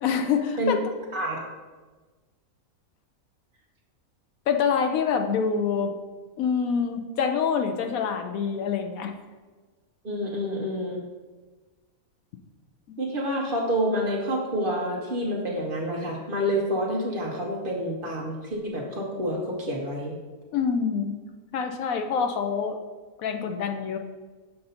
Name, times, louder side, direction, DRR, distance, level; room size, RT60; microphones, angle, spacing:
voice 1, 0.0-0.8 4.5-5.9 6.4-9.1 12.9-13.0 20.5-21.2 21.5-22.8 23.2-24.0, left 6 dB, 75° left, 6 dB, 1.0 m, -26 dB
voice 2, 10.0-11.0 13.0-20.2, equal, 45° right, -2 dB, 0.9 m, -28 dB
6.8 x 2.6 x 5.5 m, 1.3 s
omnidirectional pair, 1.5 m